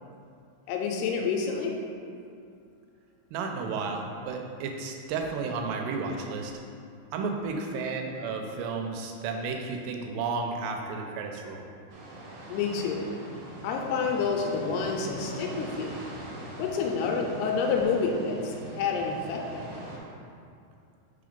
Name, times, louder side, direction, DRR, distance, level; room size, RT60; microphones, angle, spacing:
voice 1, 0.7-1.8 12.5-13.1 13.6-15.9 16.6-19.8, left 5 dB, 85° left, 1 dB, 2.6 m, -28 dB
voice 2, 3.3-6.5 7.1-11.6, right 4 dB, 90° right, 3 dB, 2.8 m, -32 dB
sound 1, 11.9-20.0, right 1 dB, 70° right, 2.2 m, -42 dB
5.6 x 3.9 x 5.1 m, 2.4 s
omnidirectional pair, 4.8 m